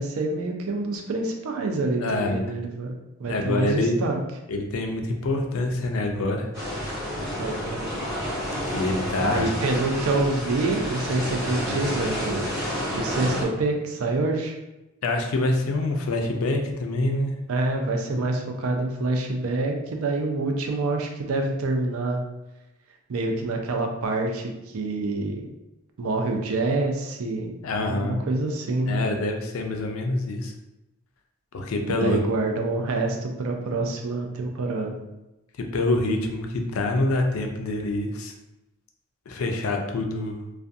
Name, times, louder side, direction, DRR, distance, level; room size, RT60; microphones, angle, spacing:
voice 1, 0.0-2.9 3.2-4.2 7.4-7.8 9.2-12.5 12.9-14.6 17.5-22.2 23.1-25.4 26.0-27.5 27.9-29.0 31.8-34.9, right 2 dB, 85° right, 3 dB, 0.4 m, -26 dB
voice 2, 2.0-2.5 3.3-4.0 4.5-6.5 8.7-9.5 15.0-17.3 27.6-28.2 28.9-30.5 31.5-32.2 35.7-38.3 39.3-40.4, left 2 dB, 80° left, 3 dB, 0.4 m, -26 dB
sound 1, 6.5-13.4, equal, 15° right, 1.1 m, -29 dB
2.4 x 2.2 x 2.6 m, 0.96 s
head